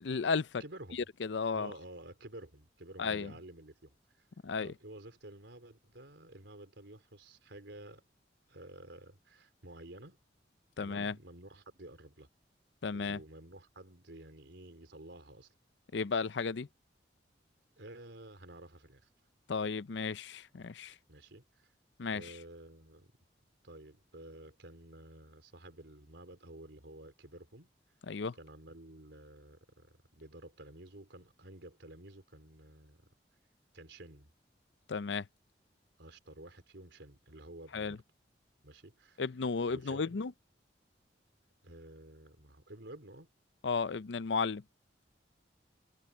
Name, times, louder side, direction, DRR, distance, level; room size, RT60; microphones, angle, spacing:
voice 1, 0.0-0.6 0.9-1.7 3.0-3.3 4.4-4.7 10.8-11.1 12.8-13.2 15.9-16.7 19.5-20.9 22.0-22.3 28.1-28.4 34.9-35.3 37.7-38.0 39.2-40.3 43.6-44.6, left 5 dB, 75° left, 0.6 m, -34 dB
voice 2, 0.6-1.1 1.5-4.0 4.6-8.0 8.5-10.2 10.8-12.3 12.9-15.5 17.8-19.1 21.1-21.7 22.1-23.1 23.6-27.7 28.4-33.0 33.7-34.3 36.0-38.0 38.6-39.2 39.7-40.2 41.6-43.3, right 1 dB, 80° right, 3.6 m, -51 dB
head